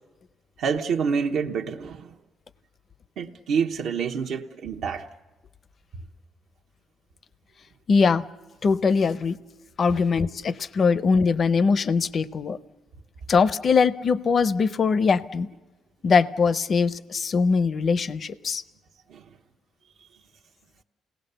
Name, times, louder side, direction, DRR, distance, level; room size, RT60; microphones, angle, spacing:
voice 1, 0.6-2.1 3.2-5.1 19.1-19.2, right 6 dB, 75° right, 0.9 m, -27 dB
voice 2, 7.9-8.2 8.6-9.4 9.8-12.6 13.3-15.5 16.0-18.6, left 5 dB, 45° left, 0.6 m, -21 dB
29.0 x 18.0 x 6.8 m
cardioid pair, 90°, 0 cm